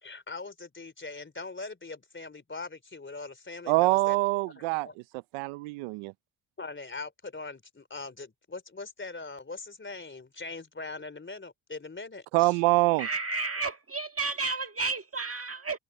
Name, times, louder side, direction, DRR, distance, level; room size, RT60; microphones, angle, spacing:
voice 1, 0.0-4.2 4.5-5.0 6.6-12.6, left 3 dB, 25° left, 3.7 m, -41 dB
voice 2, 3.7-4.9 5.3-6.1 12.3-13.1, right 23 dB, 90° right, 0.7 m, -24 dB
voice 3, 13.0-15.8, right 4 dB, 30° right, 1.7 m, -32 dB
supercardioid pair, 65°, 48 cm